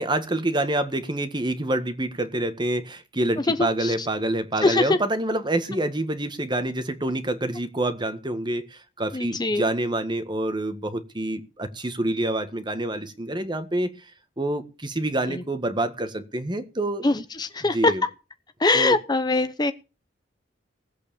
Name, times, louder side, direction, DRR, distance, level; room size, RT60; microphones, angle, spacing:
voice 1, 0.0-13.9 14.4-17.0 17.7-18.0 18.7-19.0, right 1 dB, 25° right, 10 dB, 1.6 m, -27 dB
voice 2, 3.4-4.1 4.6-5.0 9.1-9.7 15.3-15.4 17.0-17.9 18.6-19.7, left 2 dB, 20° left, 10 dB, 0.8 m, -23 dB
18.5 x 8.3 x 6.9 m, 0.32 s
head